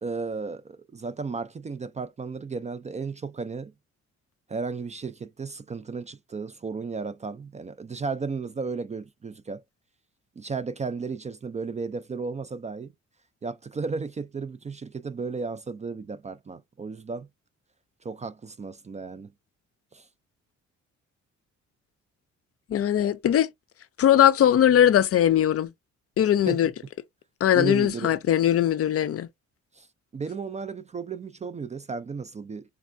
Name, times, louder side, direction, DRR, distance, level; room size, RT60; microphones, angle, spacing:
voice 1, 0.0-3.7 4.5-9.6 10.4-12.9 13.4-17.3 18.0-19.3 19.9-20.1 26.5-26.6 27.5-28.1 29.8-29.9 30.1-32.6, right 4 dB, 25° right, 0.4 m, -34 dB
voice 2, 22.7-23.5 24.0-25.7 26.2-26.7 27.4-29.3, left 10 dB, 50° left, 0.5 m, -20 dB
3.5 x 2.2 x 2.5 m
cardioid pair, 90°, 30 cm